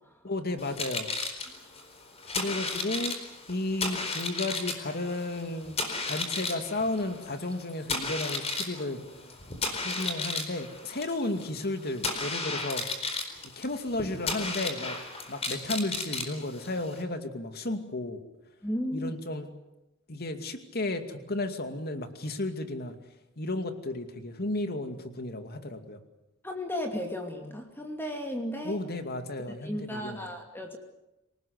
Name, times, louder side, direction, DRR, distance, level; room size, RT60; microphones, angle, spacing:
voice 1, 0.2-1.1 2.4-3.2 3.5-5.8 6.0-9.0 9.8-12.9 13.6-14.9 15.3-18.2 18.9-19.5 20.1-22.9 23.4-26.0 28.6-30.3, left 2 dB, 50° left, 8 dB, 2.5 m, -33 dB
sound 1, 0.6-17.0, left 3 dB, 30° left, 4.4 m, -34 dB
voice 2, 18.6-19.1 26.4-28.8 29.6-30.8, left 1 dB, 10° left, 3 dB, 2.5 m, -34 dB
27.0 x 19.0 x 8.1 m, 0.95 s
head